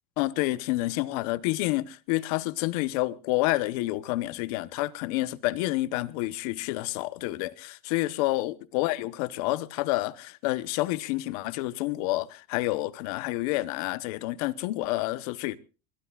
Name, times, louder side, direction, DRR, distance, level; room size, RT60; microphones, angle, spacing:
voice 1, 0.2-15.6, left 18 dB, 70° left, 0.9 m, -29 dB
22.5 x 21.0 x 2.4 m
cardioid pair, 160°, 20 cm